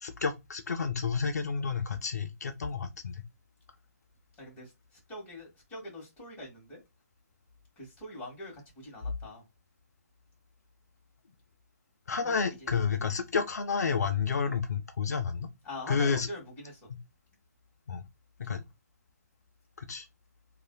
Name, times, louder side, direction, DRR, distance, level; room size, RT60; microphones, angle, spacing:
voice 1, 0.0-3.2 12.1-15.5 15.9-16.3 17.9-18.0 18.4-18.6 19.8-20.1, left 5 dB, 75° left, 0.5 m, -30 dB
voice 2, 4.4-6.8 7.8-9.4 12.2-12.7 15.6-16.9, left 1 dB, 15° left, 1.6 m, -44 dB
3.1 x 2.4 x 2.2 m
hypercardioid pair, 150°, 9 cm